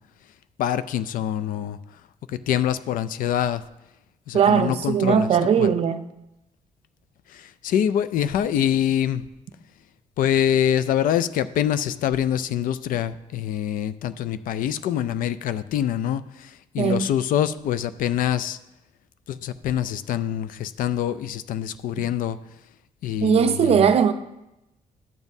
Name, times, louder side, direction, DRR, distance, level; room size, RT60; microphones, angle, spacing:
voice 1, 0.6-1.8 2.5-3.6 4.3-5.3 5.6-5.7 7.6-9.2 10.2-16.2 16.7-18.6 19.4-22.4 23.0-23.8, left 10 dB, 75° left, 0.4 m, -24 dB
voice 2, 4.3-6.0 16.8-17.1 23.2-24.1, right 7 dB, 45° right, 0.5 m, -19 dB
12.0 x 7.1 x 2.7 m
cardioid pair, 170°, 14 cm